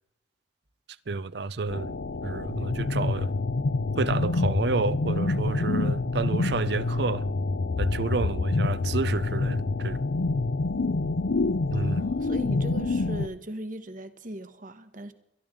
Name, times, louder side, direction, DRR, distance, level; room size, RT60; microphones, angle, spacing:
voice 1, 1.1-3.3 4.0-7.3 7.8-10.0 11.7-12.1, right 4 dB, 65° right, 0.6 m, -30 dB
sound 1, 1.7-13.3, left 3 dB, 85° left, 0.6 m, -27 dB
voice 2, 11.7-15.1, right 1 dB, 50° right, 1.2 m, -39 dB
22.5 x 12.0 x 3.7 m
head